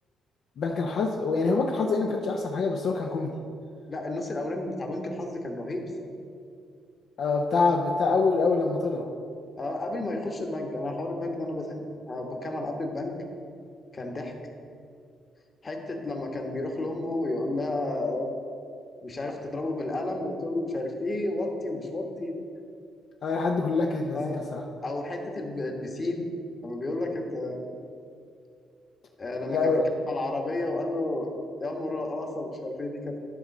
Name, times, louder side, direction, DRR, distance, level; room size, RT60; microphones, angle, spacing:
voice 1, 0.6-3.3 7.2-9.1 23.2-24.6 29.5-29.8, left 4 dB, 65° left, 1 dB, 0.6 m, -25 dB
voice 2, 3.9-6.1 9.6-13.1 13.9-14.3 15.6-18.3 19.0-22.4 24.1-24.4 24.8-26.3 26.6-27.6 29.2-29.8 30.1-31.3 31.6-33.2, left 2 dB, 35° left, 3 dB, 1.3 m, -32 dB
11.0 x 3.9 x 6.4 m, 2.4 s
cardioid pair, 90°, 0 cm